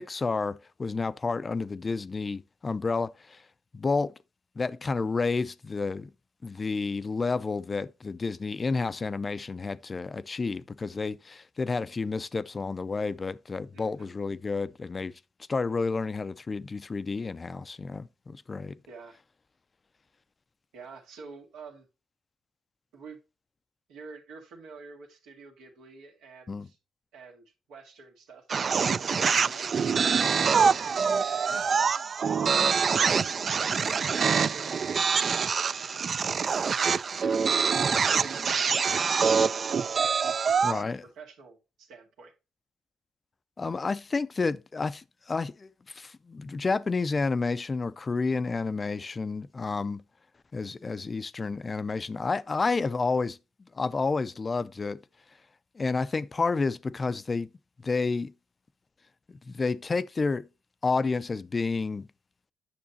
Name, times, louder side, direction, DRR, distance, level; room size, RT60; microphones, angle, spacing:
voice 1, 0.0-3.4 3.7-4.1 4.6-6.1 6.4-15.1 15.5-18.8 26.5-26.7 40.6-41.0 43.6-50.0 50.5-53.4 53.7-55.0 55.8-57.5 57.8-58.3 59.3-60.5 60.8-62.1, left 4 dB, 30° left, 0.4 m, -30 dB
voice 2, 13.7-14.1 18.9-19.2 20.7-21.9 22.9-23.2 23.9-26.8 27.1-28.5 29.1-31.9 32.2-33.2 33.9-36.3 37.2-40.2 40.5-42.3, right 4 dB, 85° right, 2.1 m, -49 dB
sound 1, 28.5-40.8, right 6 dB, 45° right, 0.3 m, -25 dB
8.6 x 6.5 x 2.7 m
cardioid pair, 90°, 0 cm